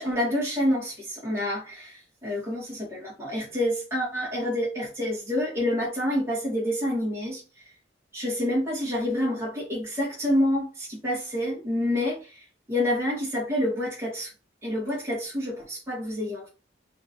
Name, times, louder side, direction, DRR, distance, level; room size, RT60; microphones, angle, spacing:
voice 1, 0.0-7.4 8.1-14.3 14.6-16.5, left 1 dB, 15° right, 2.3 m, -28 dB
5.0 x 3.4 x 2.8 m
head